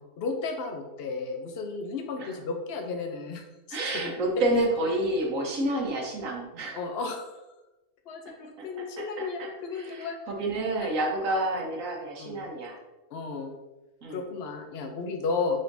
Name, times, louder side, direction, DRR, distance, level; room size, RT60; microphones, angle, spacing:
voice 1, 0.2-4.1 6.8-7.4 8.1-10.2 12.2-12.4 13.1-13.5 14.1-15.6, left 4 dB, 55° left, 4 dB, 0.7 m, -33 dB
voice 2, 3.7-6.8 8.6-12.8 14.0-14.2, right 1 dB, 65° right, 0 dB, 1.3 m, -29 dB
5.2 x 3.7 x 2.6 m, 1.0 s
omnidirectional pair, 1.6 m